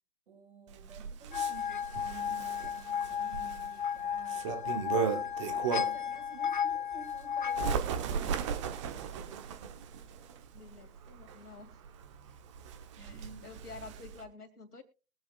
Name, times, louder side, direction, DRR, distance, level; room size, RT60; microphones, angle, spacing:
voice 1, 0.3-4.5 5.3-8.8 12.2-12.4 13.0-13.5, right 5 dB, 50° right, 5.5 m, -52 dB
Bird, 0.7-6.1 6.6-14.2, right 7 dB, 20° right, 1.1 m, -37 dB
sound 1, 1.3-7.8, left 8 dB, 35° left, 0.6 m, -34 dB
voice 2, 10.5-11.8 13.0-14.8, left 4 dB, 80° left, 2.8 m, -50 dB
22.0 x 7.6 x 2.5 m
figure-of-eight pair, 140°, 45 cm